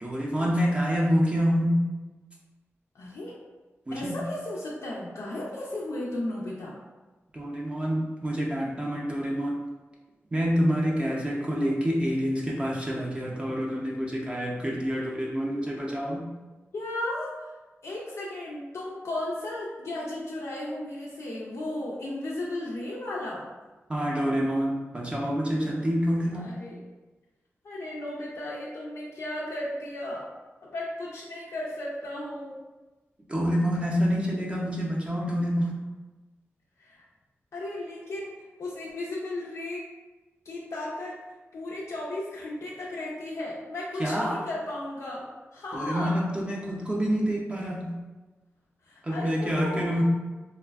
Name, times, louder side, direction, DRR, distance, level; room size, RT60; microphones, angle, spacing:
voice 1, 0.0-1.7 3.9-4.2 7.3-9.6 10.3-16.2 23.9-26.6 33.3-35.8 44.0-44.4 45.7-47.9 49.0-50.0, equal, 25° right, -3 dB, 0.4 m, -27 dB
voice 2, 2.9-3.4 3.9-6.8 11.1-11.2 16.7-17.5 17.8-23.5 26.3-26.8 27.6-30.3 30.6-32.6 36.8-37.0 37.5-38.3 38.6-39.8 40.4-41.2 41.5-46.2 48.8-50.0, left 1 dB, 85° left, -5 dB, 0.4 m, -35 dB
3.2 x 2.0 x 2.3 m, 1.2 s
wide cardioid pair, 115°, 5 cm